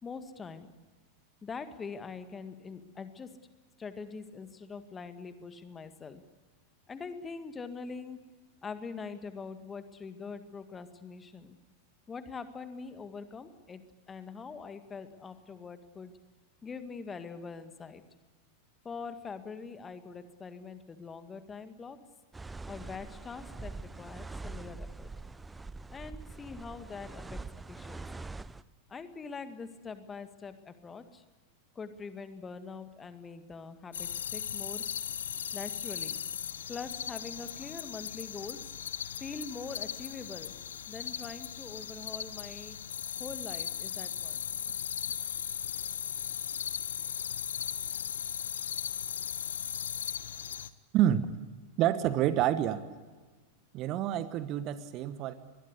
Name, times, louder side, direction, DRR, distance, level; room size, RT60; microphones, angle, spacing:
voice 1, 0.0-0.7 1.4-3.3 3.8-6.2 6.9-8.2 8.6-11.6 12.1-16.1 16.6-18.0 18.8-22.0 22.7-25.1 25.9-28.3 28.9-31.2 31.8-34.8 35.5-36.2 36.7-38.6 39.2-42.8 43.2-44.4, left 5 dB, 20° left, 10 dB, 1.9 m, -43 dB
sound 1, 22.3-28.6, right 3 dB, 10° right, 0.7 m, -44 dB
sound 2, 33.9-50.7, left 9 dB, 65° left, 0.9 m, -37 dB
voice 2, 50.9-51.3 51.8-52.8 53.7-55.3, right 11 dB, 40° right, 13 dB, 1.3 m, -28 dB
23.5 x 21.0 x 8.3 m, 1.4 s
figure-of-eight pair, 90°, 0 cm